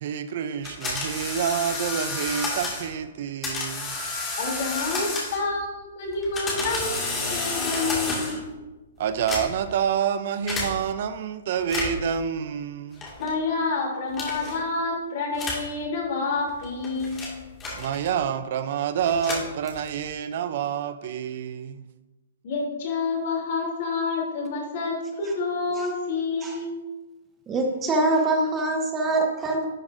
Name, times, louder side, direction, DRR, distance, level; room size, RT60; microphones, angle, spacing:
voice 1, 0.0-4.0 9.0-13.1 17.7-21.8, right 8 dB, 55° right, 0.5 m, -28 dB
sound 1, 0.6-2.9 3.4-5.6 6.1-8.5 9.1-9.7 10.5-10.7 11.6-12.1 13.0-13.3 14.1-14.6 15.3-15.7 16.5-18.2 19.0-20.1, left 3 dB, 15° left, 2.0 m, -31 dB
voice 2, 4.4-7.0 7.3-8.4 13.2-17.2 22.4-26.7, left 3 dB, 50° left, 3.0 m, -28 dB
voice 3, 27.5-29.7, right 2 dB, 15° right, 0.8 m, -24 dB
11.0 x 7.3 x 2.6 m
hypercardioid pair, 155°, 0 cm